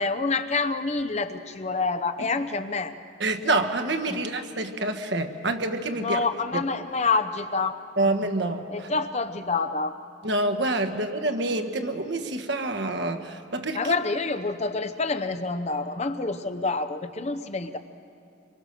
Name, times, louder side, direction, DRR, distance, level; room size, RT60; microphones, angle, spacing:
voice 1, 0.0-2.9 4.1-4.2 6.0-7.8 8.7-10.0 13.7-17.8, left 3 dB, 35° left, 10 dB, 0.8 m, -27 dB
voice 2, 3.2-6.2 6.5-6.6 8.0-8.9 10.2-13.9, right 2 dB, 60° right, 6 dB, 1.4 m, -27 dB
26.0 x 23.0 x 6.7 m, 2.6 s
head